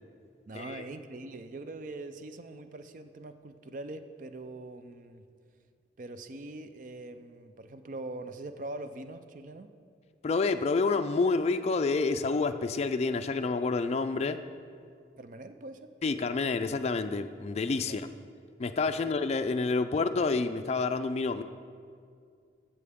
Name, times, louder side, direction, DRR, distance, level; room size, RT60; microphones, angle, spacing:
voice 1, 0.5-5.3 6.0-9.7 15.2-15.9 17.9-18.0, right 2 dB, 45° right, 9 dB, 0.5 m, -42 dB
voice 2, 10.2-14.4 16.0-18.1 18.6-21.4, left 4 dB, 35° left, 8 dB, 0.3 m, -28 dB
15.0 x 6.8 x 3.6 m, 2.3 s
head